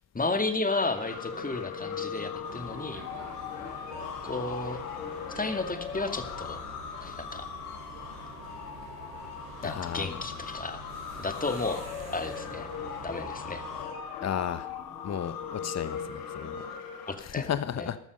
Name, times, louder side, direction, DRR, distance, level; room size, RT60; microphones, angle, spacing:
voice 1, 0.1-3.0 4.2-4.8 5.3-6.6 7.0-7.5 9.6-10.8 11.2-11.8 12.1-12.7 13.0-13.6 17.1-17.9, left 3 dB, 20° left, 8 dB, 2.3 m, -33 dB
sound 1, 0.7-17.2, left 7 dB, 85° left, 2.5 m, -39 dB
sound 2, 2.4-13.8, right 4 dB, 50° right, 4.6 m, -47 dB
voice 2, 9.6-10.2 14.2-14.7 15.0-16.5 17.2-18.0, left 9 dB, 35° left, 14 dB, 1.2 m, -33 dB
15.0 x 12.5 x 5.4 m, 0.70 s
hypercardioid pair, 55°, 45 cm